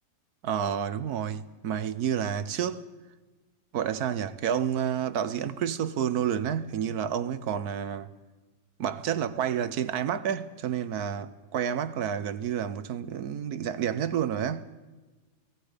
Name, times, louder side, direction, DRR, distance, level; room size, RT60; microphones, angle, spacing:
voice 1, 0.4-2.9 3.7-8.1 8.8-14.7, right 9 dB, 75° right, 1.4 m, -29 dB
29.0 x 18.5 x 5.1 m
omnidirectional pair, 1.7 m